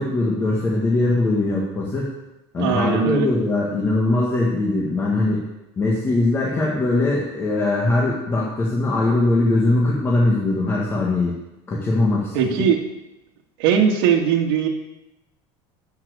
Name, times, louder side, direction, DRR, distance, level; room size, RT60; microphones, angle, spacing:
voice 1, 0.0-2.1 2.5-5.4 5.8-11.4 11.7-12.4, left 2 dB, 20° left, -4 dB, 1.8 m, -21 dB
voice 2, 2.6-3.3 12.3-12.8 13.6-14.7, right 8 dB, 80° right, 1 dB, 2.0 m, -19 dB
13.0 x 6.0 x 8.3 m, 0.94 s
cardioid pair, 170°, 13 cm